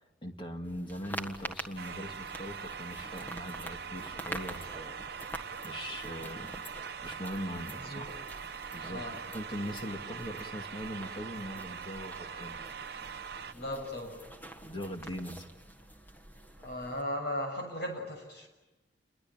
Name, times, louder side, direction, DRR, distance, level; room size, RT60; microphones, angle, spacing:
voice 1, 0.2-5.3 5.6-6.7 7.0-8.1 8.7-9.0 9.3-12.7 14.6-15.4, equal, 25° left, 4 dB, 2.2 m, -41 dB
sound 1, 0.6-17.0, right 1 dB, 10° left, 1.6 m, -46 dB
sound 2, 1.8-13.5, right 6 dB, 55° right, 1.0 m, -42 dB
voice 2, 7.8-8.1 8.9-9.1 13.5-14.2 16.6-18.5, left 1 dB, 60° left, 4 dB, 6.9 m, -37 dB
29.5 x 22.0 x 9.0 m, 1.1 s
head